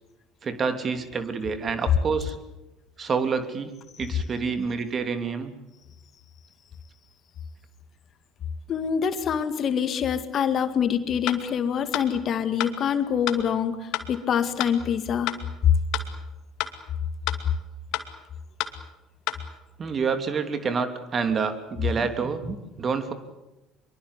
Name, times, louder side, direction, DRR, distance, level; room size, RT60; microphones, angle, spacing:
voice 1, 0.4-2.3 3.0-3.7 4.0-5.5 19.8-23.1, right 5 dB, 40° right, 9 dB, 3.1 m, -28 dB
voice 2, 8.7-15.3, left 8 dB, 50° left, 10 dB, 2.2 m, -25 dB
sound 1, 11.3-11.4 11.9-12.1 12.6-12.7 13.3-13.4 13.9-14.1 14.6-14.7 15.3-15.4 15.9-16.1 16.6-16.7 17.3-17.4 17.9-18.1 18.6-18.7 19.3-19.4, left 13 dB, 65° left, 2.4 m, -29 dB
24.0 x 23.0 x 8.2 m, 0.99 s
hypercardioid pair, 70°, 0 cm